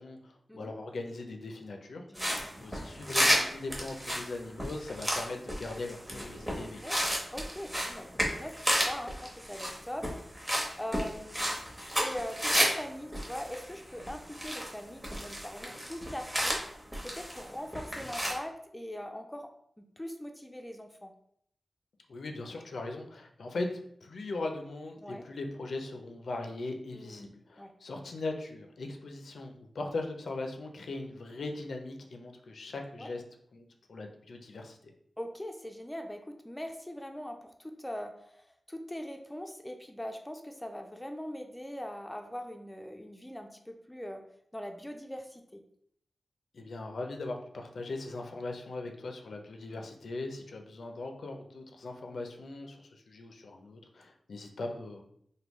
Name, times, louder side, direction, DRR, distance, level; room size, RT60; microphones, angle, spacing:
voice 1, 0.0-2.0 2.6-6.8 22.1-23.7 24.0-33.2 33.5-34.9 46.5-55.0, left 2 dB, 85° left, 3 dB, 0.4 m, -39 dB
voice 2, 2.1-2.5 6.8-10.1 10.4-11.6 12.0-16.6 17.1-19.5 20.0-21.1 25.0-25.2 26.9-27.3 27.6-27.7 33.0-33.1 35.2-44.2 44.5-45.6, equal, 10° left, 4 dB, 0.4 m, -41 dB
sound 1, 2.1-12.8 13.1-14.8 15.0-17.4 17.7-18.3, equal, 10° right, 0.8 m, -32 dB
3.4 x 2.2 x 3.0 m, 0.69 s
wide cardioid pair, 90°, 0 cm